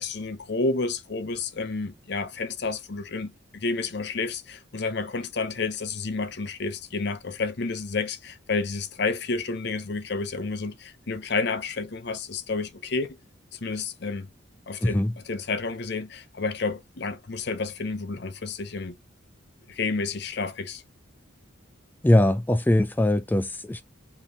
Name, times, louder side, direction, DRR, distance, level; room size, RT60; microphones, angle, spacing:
voice 1, 0.0-13.2 13.5-14.3 14.7-18.9 19.7-20.8, left 4 dB, 55° left, 0.7 m, -30 dB
voice 2, 14.8-15.1 22.0-23.8, left 1 dB, 10° left, 0.3 m, -21 dB
5.3 x 2.8 x 3.0 m
head